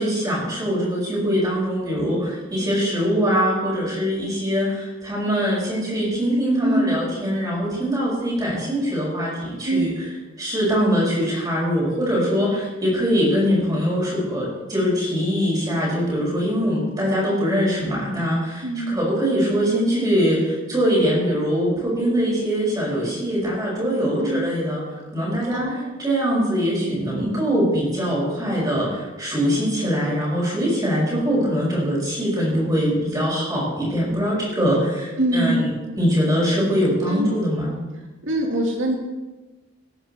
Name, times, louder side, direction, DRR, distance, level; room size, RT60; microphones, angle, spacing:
voice 1, 0.0-10.1 10.4-24.8 25.1-25.6 26.0-35.7 36.0-37.8, equal, 20° right, -5 dB, 6.0 m, -22 dB
voice 2, 6.6-7.0 9.6-9.9 18.6-19.0 24.2-24.5 25.5-25.9 35.2-35.7 37.1-37.4 38.2-38.9, right 1 dB, 65° right, 0 dB, 2.8 m, -23 dB
18.0 x 10.5 x 4.5 m, 1.2 s
head